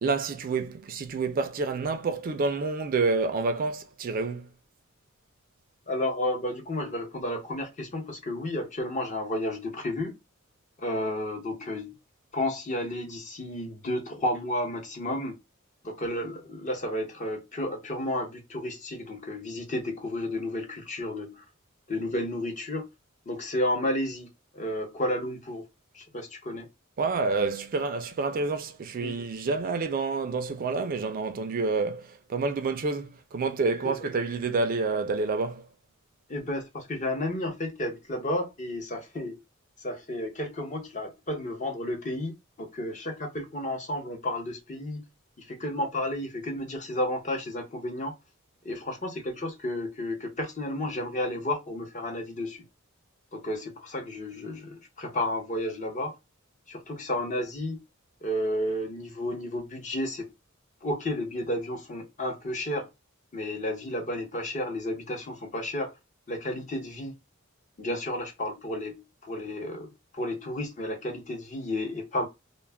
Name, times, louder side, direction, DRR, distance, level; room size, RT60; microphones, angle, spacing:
voice 1, 0.0-4.5 27.0-35.7, right 4 dB, 45° right, 0.4 m, -28 dB
voice 2, 5.9-10.2 10.8-12.0 12.3-15.4 15.8-21.4 21.9-22.9 23.3-24.3 24.5-25.6 25.9-26.7 29.0-29.1 33.8-34.1 36.3-39.4 39.8-45.0 45.4-48.1 48.6-52.6 53.3-56.1 56.7-57.8 58.2-60.3 60.8-62.9 63.3-65.9 66.3-67.2 67.8-72.3, left 1 dB, 35° left, 0.7 m, -32 dB
2.3 x 2.1 x 3.2 m
head